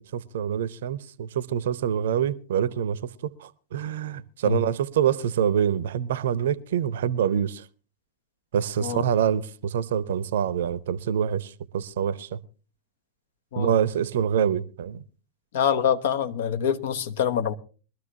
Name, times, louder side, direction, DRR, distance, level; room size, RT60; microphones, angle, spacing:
voice 1, 0.1-7.6 8.5-12.4 13.6-15.0, right 9 dB, 60° right, 0.7 m, -26 dB
voice 2, 15.5-17.5, left 8 dB, 55° left, 1.0 m, -25 dB
22.5 x 13.5 x 2.8 m
figure-of-eight pair, 90°, 0 cm